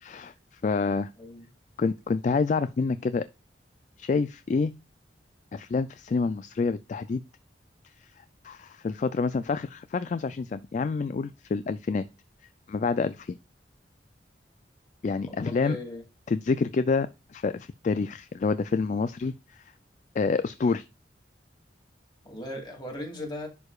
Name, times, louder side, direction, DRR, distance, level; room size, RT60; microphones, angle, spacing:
voice 1, 0.0-1.1 1.8-3.3 4.0-4.7 5.5-7.2 8.2-12.1 12.7-13.4 15.0-15.8 16.3-19.6 20.2-20.8, left 4 dB, 45° left, 0.3 m, -28 dB
voice 2, 15.3-16.0 22.2-23.5, left 1 dB, 25° left, 2.5 m, -38 dB
11.0 x 4.8 x 2.3 m
head